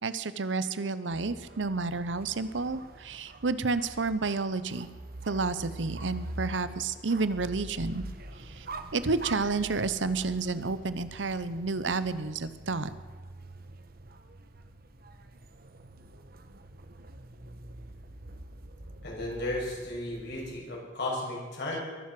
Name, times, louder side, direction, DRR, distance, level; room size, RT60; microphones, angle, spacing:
voice 1, 0.0-4.9 5.3-8.0 8.4-8.7 8.9-12.9, right 3 dB, 75° right, 14 dB, 0.9 m, -30 dB
sound 1, 1.1-20.6, right 1 dB, 55° right, 1.2 m, -45 dB
voice 2, 19.0-21.8, left 1 dB, 65° left, -3 dB, 6.2 m, -34 dB
22.5 x 7.6 x 7.7 m, 1.5 s
head